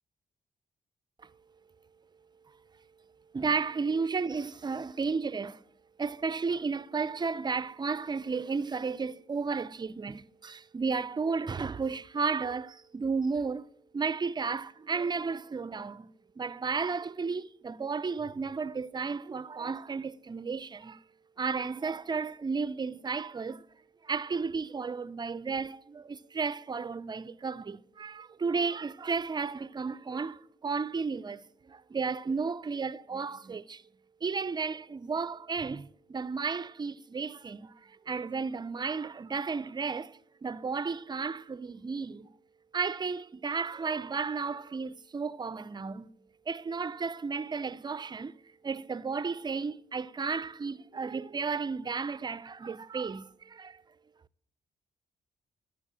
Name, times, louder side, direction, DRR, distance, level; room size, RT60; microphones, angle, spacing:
voice 1, 3.3-5.6 6.0-13.7 13.9-21.0 21.4-23.7 24.0-33.8 34.2-42.3 42.7-46.1 46.5-53.8, right 5 dB, 25° right, 0.4 m, -33 dB
12.5 x 4.5 x 6.1 m
supercardioid pair, 50°, 18 cm